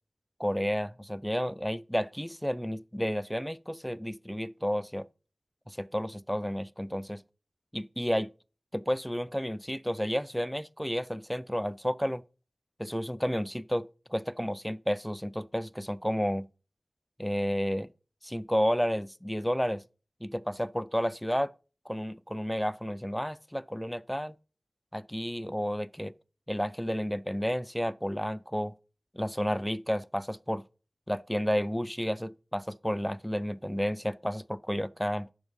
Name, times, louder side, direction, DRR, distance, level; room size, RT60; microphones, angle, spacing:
voice 1, 0.4-5.1 5.7-7.2 7.7-8.3 8.7-12.2 12.8-16.5 17.2-17.9 18.2-19.8 20.2-21.5 21.9-24.3 24.9-26.1 26.5-28.7 29.1-30.6 31.1-35.3, equal, 5° left, 0.4 m, -31 dB
9.4 x 6.4 x 5.5 m
wide cardioid pair, 80°, 0 cm